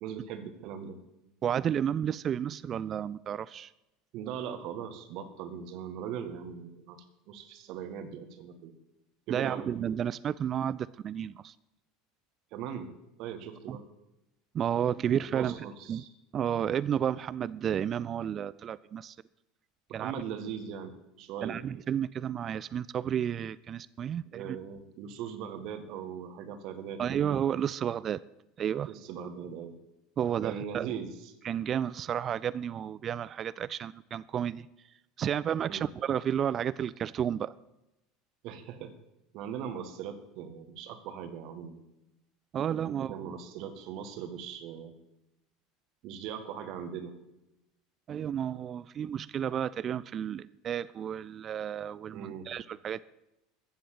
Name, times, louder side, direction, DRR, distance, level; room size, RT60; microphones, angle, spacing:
voice 1, 0.0-1.0 4.1-8.7 9.3-9.7 12.5-12.9 13.2-13.9 15.3-16.1 19.9-21.6 24.3-27.2 28.9-29.8 30.4-31.3 35.6-35.9 38.4-38.9 39.3-41.8 42.8-45.0 46.0-47.1 52.1-52.5, right 8 dB, 50° right, 9 dB, 1.7 m, -40 dB
voice 2, 1.4-3.7 9.3-11.5 13.7-13.8 14.5-15.6 15.9-16.0 16.3-19.2 19.9-20.1 21.4-24.6 27.0-28.2 28.6-28.9 30.2-30.9 31.4-34.7 35.2-37.5 42.5-43.2 48.1-53.0, right 9 dB, 35° right, 18 dB, 0.4 m, -32 dB
14.5 x 7.9 x 7.7 m, 0.91 s
figure-of-eight pair, 70°, 0 cm